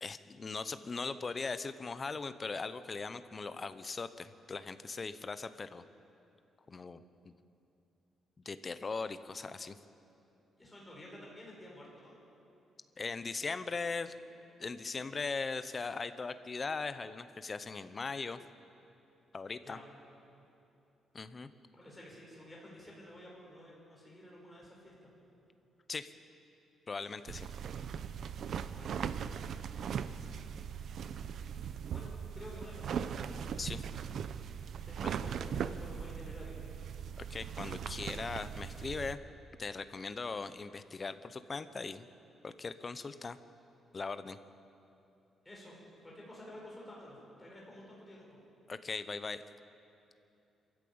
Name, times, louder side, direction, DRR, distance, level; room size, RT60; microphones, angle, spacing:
voice 1, 0.0-5.8 6.7-7.3 8.4-9.8 13.0-14.1 14.6-18.4 19.3-19.8 21.1-21.5 25.9-26.1 26.9-27.5 33.6-33.8 35.0-35.1 37.3-39.2 39.6-42.1 42.4-43.4 43.9-44.4 48.7-49.4, left 4 dB, 25° left, 12 dB, 0.7 m, -39 dB
voice 2, 10.6-12.2 19.6-19.8 21.7-25.1 28.7-29.2 29.8-30.3 31.9-33.2 34.9-36.6 45.5-45.8 46.0-48.4, left 1 dB, 10° left, -3 dB, 5.1 m, -51 dB
sound 1, 27.3-39.2, right 7 dB, 50° right, 0.7 m, -39 dB
25.5 x 14.0 x 8.7 m, 2.8 s
cardioid pair, 170°, 0 cm